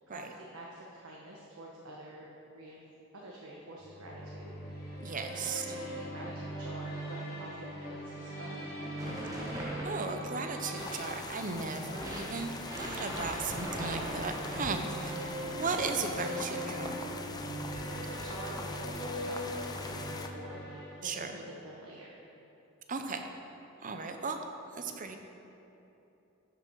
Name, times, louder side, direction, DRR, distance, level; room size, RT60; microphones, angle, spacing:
voice 1, 0.1-2.3 2.5-2.8 3.1-5.1 5.4-9.1 9.4-9.6 17.9-22.2, right 1 dB, 85° right, -3 dB, 1.1 m, -48 dB
sound 1, 3.8-21.5, equal, 50° left, 2.1 m, -41 dB
voice 2, 5.0-5.6 9.8-17.0 21.0-21.4 22.9-23.3 23.8-24.4 24.8-25.2, right 4 dB, 40° right, 6 dB, 0.7 m, -36 dB
sound 2, 9.0-11.2 12.0-15.1 15.6-16.2, right 1 dB, 15° right, 1.3 m, -42 dB
sound 3, 10.8-20.3, left 3 dB, 20° left, 0.5 m, -43 dB
12.0 x 6.9 x 4.7 m, 3.0 s
head